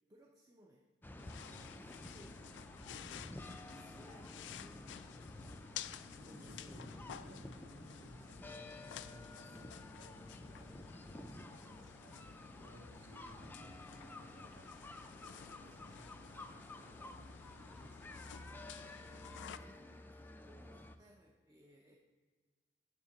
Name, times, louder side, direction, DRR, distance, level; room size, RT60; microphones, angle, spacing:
voice 1, 0.1-0.8 1.1-2.5 2.9-5.1 6.2-6.8 9.3-9.6 15.6-15.7 18.8-19.2 19.5-22.0, equal, 20° right, -1 dB, 0.7 m, -63 dB
sound 1, 1.0-21.0, left 1 dB, 10° left, 0.4 m, -52 dB
sound 2, 1.2-19.6, left 9 dB, 85° left, 0.3 m, -53 dB
voice 2, 6.1-18.2, right 1 dB, 90° right, -8 dB, 2.7 m, -61 dB
9.4 x 3.6 x 7.1 m, 1.5 s
head